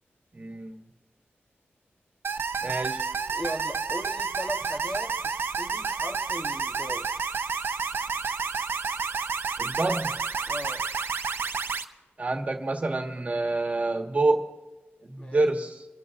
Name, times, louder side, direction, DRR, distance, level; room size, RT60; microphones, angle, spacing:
voice 1, 0.3-0.8 2.6-3.1 9.6-10.2 12.2-14.5 15.0-15.8, right 2 dB, 40° right, 1.4 m, -27 dB
sound 1, 2.2-11.8, right 5 dB, 65° right, 0.6 m, -30 dB
voice 2, 3.3-7.1 10.5-10.9 15.2-15.4, equal, 20° left, 1.1 m, -37 dB
28.5 x 14.0 x 2.5 m
wide cardioid pair, 90°, 4 cm